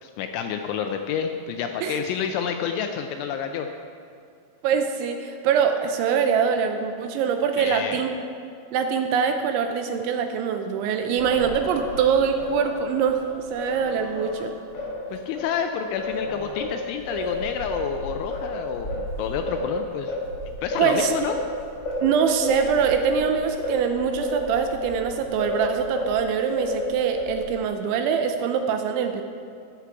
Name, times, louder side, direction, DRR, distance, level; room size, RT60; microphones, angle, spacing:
voice 1, 0.0-3.7 7.6-8.1 15.1-20.2 20.6-21.4, left 7 dB, 85° left, 5 dB, 2.7 m, -29 dB
voice 2, 4.6-8.1 8.7-13.2 13.5-14.5 20.8-21.1 22.0-29.2, right 7 dB, 80° right, 6 dB, 2.8 m, -24 dB
Singing, 11.2-15.5 16.0-26.2 26.6-27.6, left 1 dB, 25° left, 2.7 m, -31 dB
14.5 x 11.5 x 4.6 m, 2.4 s
omnidirectional pair, 5.9 m